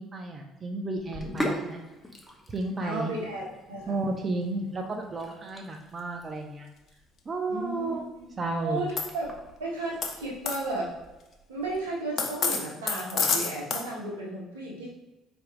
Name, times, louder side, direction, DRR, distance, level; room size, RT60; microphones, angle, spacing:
voice 1, 0.0-1.8 2.5-3.1 3.9-6.7 7.3-8.0 8.4-8.8, right 2 dB, 35° right, 3 dB, 0.6 m, -32 dB
Sink (filling or washing), 1.0-11.8, equal, 10° left, 0.9 m, -41 dB
voice 2, 2.8-4.0 7.5-8.3 8.6-9.3 9.6-10.9 11.5-14.9, right 2 dB, 90° right, -5 dB, 1.3 m, -34 dB
sound 1, 9.0-9.1 10.0-10.1 10.5-10.6 12.2-13.8, left 5 dB, 55° left, 0.7 m, -27 dB
4.3 x 3.4 x 2.5 m, 1.1 s
hypercardioid pair, 60°, 0 cm